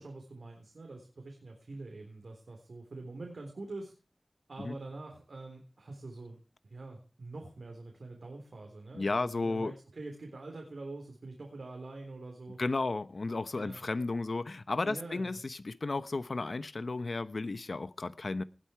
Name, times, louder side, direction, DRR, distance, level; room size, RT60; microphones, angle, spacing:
voice 1, 0.0-3.9 4.5-6.4 6.6-12.6 13.5-13.8 14.8-15.4, right 2 dB, 85° right, 3.9 m, -45 dB
voice 2, 8.9-9.7 12.6-18.4, left 3 dB, 65° left, 1.0 m, -33 dB
19.5 x 8.5 x 4.6 m
wide cardioid pair, 55°, 0 cm